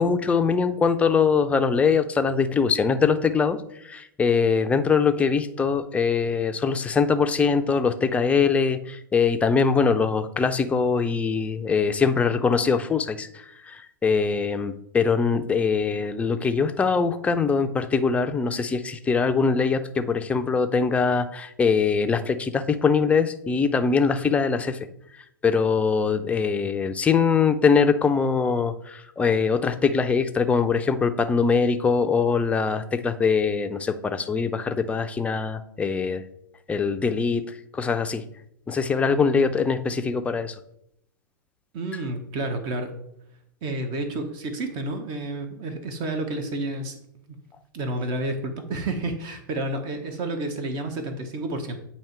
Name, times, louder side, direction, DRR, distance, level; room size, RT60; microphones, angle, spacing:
voice 1, 0.0-3.6 3.9-24.8 25.4-36.2 36.7-37.4 37.7-38.2 38.7-40.5, left 5 dB, 10° left, 8 dB, 0.4 m, -22 dB
voice 2, 41.7-42.9 43.6-47.0 47.3-47.4 47.7-51.8, right 2 dB, 40° right, 6 dB, 0.9 m, -30 dB
8.6 x 2.9 x 4.4 m, 0.77 s
hypercardioid pair, 105°, 11 cm